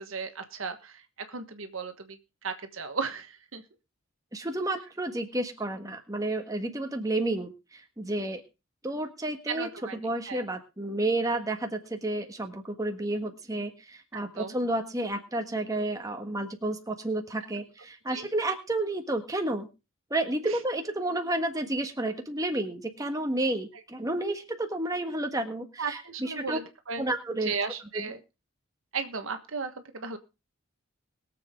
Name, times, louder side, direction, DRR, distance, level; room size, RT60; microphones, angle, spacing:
voice 1, 0.0-3.6 9.5-10.0 10.3-10.4 14.4-14.6 18.1-18.3 20.4-20.6 25.8-27.1 27.3-28.2 28.9-30.2, right 5 dB, 70° right, 8 dB, 1.3 m, -35 dB
voice 2, 4.3-7.5 8.0-8.4 8.8-9.7 10.0-19.7 20.1-26.6 27.0-27.5 27.9-28.1, right 1 dB, 15° right, 5 dB, 1.5 m, -31 dB
21.5 x 7.4 x 3.7 m, 0.29 s
head